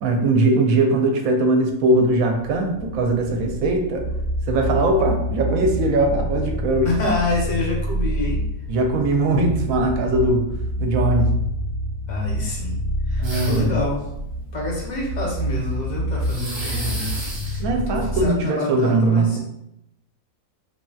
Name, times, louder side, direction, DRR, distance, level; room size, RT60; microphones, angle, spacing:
voice 1, 0.0-4.1 4.5-6.9 8.7-10.4 10.8-11.3 13.2-13.8 17.6-19.4, right 2 dB, 80° right, 3 dB, 1.0 m, -20 dB
sound 1, 2.5-18.3, equal, 60° right, 1.0 m, -27 dB
voice 2, 6.8-8.4 12.1-12.8 13.1-14.1 14.5-19.4, left 2 dB, 40° left, -3 dB, 0.7 m, -27 dB
sound 2, 13.2-13.8 16.2-17.6, right 1 dB, 40° right, 0.4 m, -33 dB
3.1 x 2.7 x 2.3 m, 0.81 s
omnidirectional pair, 1.4 m